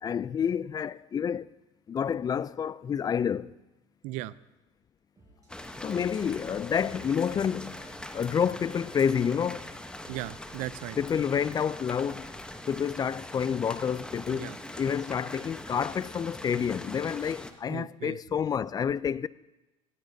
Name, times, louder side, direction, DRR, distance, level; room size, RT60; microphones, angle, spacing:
voice 1, 0.0-1.5 1.9-3.5 5.8-7.8 8.1-9.7 11.0-12.3 12.7-19.3, left 7 dB, 30° left, 0.3 m, -29 dB
voice 2, 4.0-4.3 10.1-11.0 14.3-14.6 17.7-18.2, right 16 dB, 75° right, 0.4 m, -37 dB
sound 1, 5.2-14.1, right 2 dB, 25° right, 4.9 m, -59 dB
sound 2, 5.5-17.5, left 1 dB, 5° left, 0.9 m, -42 dB
15.0 x 15.0 x 2.7 m
supercardioid pair, 85°, 13 cm